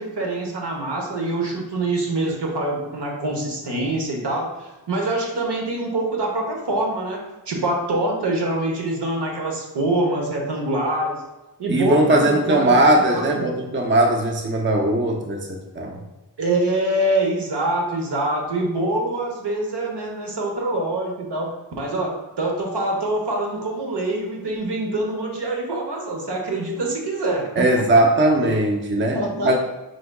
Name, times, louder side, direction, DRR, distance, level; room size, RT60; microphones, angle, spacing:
voice 1, 0.0-11.2 11.6-12.8 13.1-13.5 16.4-21.5 21.8-28.0 28.4-28.5 28.9-29.6, right 2 dB, 75° right, 0 dB, 1.1 m, -25 dB
voice 2, 11.7-16.0 27.6-29.2 29.4-29.6, right 1 dB, 30° right, 2 dB, 0.6 m, -19 dB
4.8 x 3.8 x 2.3 m, 1.0 s
wide cardioid pair, 60°, 41 cm